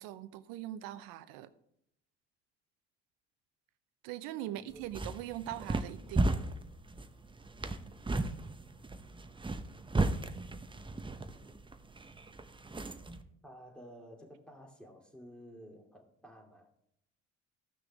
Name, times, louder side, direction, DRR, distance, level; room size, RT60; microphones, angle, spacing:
voice 1, 0.0-1.5 4.0-6.3, right 13 dB, 70° right, 14 dB, 0.8 m, -41 dB
voice 2, 4.4-5.1 8.6-9.8 13.4-16.7, equal, 5° left, 2 dB, 2.5 m, -54 dB
sound 1, 4.7-13.2, right 2 dB, 15° right, 0.8 m, -36 dB
14.5 x 6.2 x 3.5 m, 0.76 s
hypercardioid pair, 60°, 35 cm